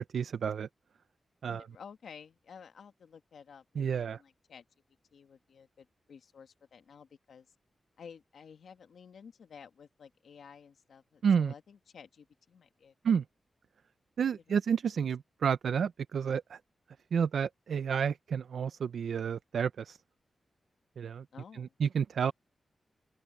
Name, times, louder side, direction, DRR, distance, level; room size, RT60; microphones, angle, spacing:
voice 1, 0.1-0.7 1.4-1.7 3.8-4.2 11.2-11.5 13.0-13.2 14.2-16.6 17.1-20.0 21.0-21.3 21.5-22.3, right 7 dB, 85° right, 0.5 m, -30 dB
voice 2, 1.4-4.6 5.1-7.4 8.0-13.1 14.2-14.6 21.3-21.7, left 6 dB, 85° left, 1.5 m, -53 dB
open air
wide cardioid pair, 115°, 0 cm